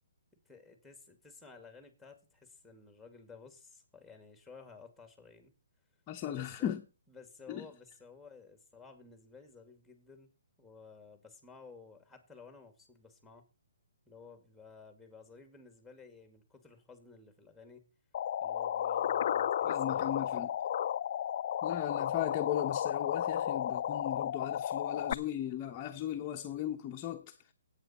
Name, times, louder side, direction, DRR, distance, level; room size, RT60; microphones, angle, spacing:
voice 1, 0.5-5.5 6.3-6.8 7.1-10.3 10.6-13.5 14.1-17.9 18.4-20.5, left 4 dB, ahead, 2.3 m, -54 dB
voice 2, 6.1-6.8 7.5-7.7 19.7-20.5 21.6-27.4, left 11 dB, 25° left, 1.0 m, -37 dB
sound 1, 18.1-25.1, left 10 dB, 50° left, 0.5 m, -33 dB
13.5 x 8.6 x 4.4 m
hypercardioid pair, 150°, 0 cm